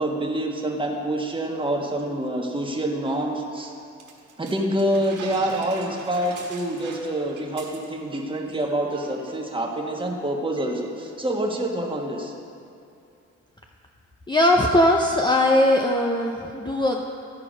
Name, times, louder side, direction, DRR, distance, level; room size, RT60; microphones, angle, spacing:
voice 1, 0.0-3.7 4.4-12.3, right 1 dB, 15° right, 0 dB, 1.3 m, -26 dB
sound 1, 4.0-8.2 8.5-8.6 8.9-9.3, right 4 dB, 90° right, 1.4 m, -42 dB
voice 2, 14.3-17.0, left 1 dB, 15° left, 1 dB, 0.6 m, -20 dB
14.0 x 4.8 x 5.1 m, 2.6 s
cardioid pair, 90°, 30 cm